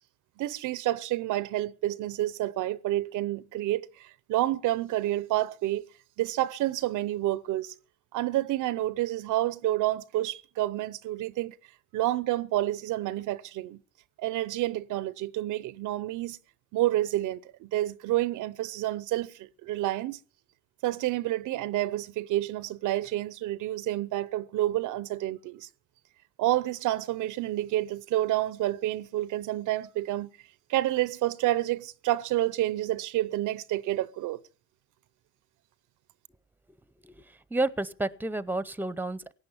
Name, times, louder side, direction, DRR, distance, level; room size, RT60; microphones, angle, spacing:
voice 1, 0.4-5.8 6.2-7.7 8.1-11.5 11.9-13.8 14.2-16.4 16.7-20.2 20.8-25.7 26.4-30.3 30.7-34.4, right 15 dB, 85° right, 0.7 m, -29 dB
voice 2, 37.0-39.3, right 2 dB, 5° right, 0.7 m, -31 dB
17.0 x 9.4 x 7.0 m
cardioid pair, 90°, 30 cm